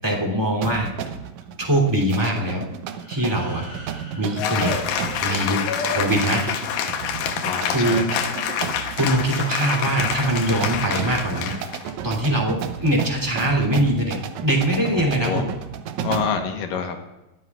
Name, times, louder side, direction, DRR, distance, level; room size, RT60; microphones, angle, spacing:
voice 1, 0.0-0.9 1.6-2.6 3.1-3.6 4.2-4.7 5.2-5.6 5.9-6.5 7.7-8.1 8.9-11.6 12.0-15.5, right 1 dB, 5° right, -1 dB, 2.6 m, -22 dB
sound 1, 0.6-16.5, right 8 dB, 80° right, 1.7 m, -33 dB
sound 2, 2.9-5.8, left 1 dB, 35° left, 4.2 m, -46 dB
Cheering / Applause, 4.4-11.9, left 7 dB, 85° left, 2.8 m, -27 dB
voice 2, 7.4-8.3 12.8-13.0 14.9-15.5 16.0-17.0, left 6 dB, 70° left, 4 dB, 2.7 m, -28 dB
21.5 x 14.0 x 2.5 m, 0.98 s
omnidirectional pair, 4.3 m